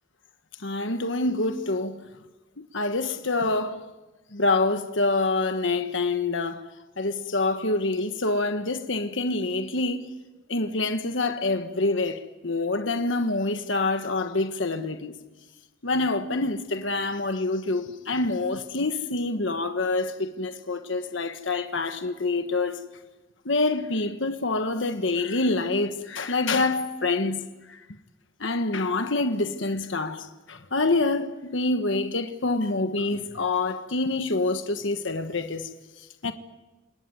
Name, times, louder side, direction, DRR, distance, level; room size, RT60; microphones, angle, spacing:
voice 1, 0.6-2.0 2.6-3.9 4.3-6.6 7.0-10.1 10.5-15.1 15.8-22.8 23.4-27.8 28.4-35.7 36.2-36.3, left 2 dB, 65° left, 1.4 m, -26 dB
28.5 x 18.0 x 9.4 m
head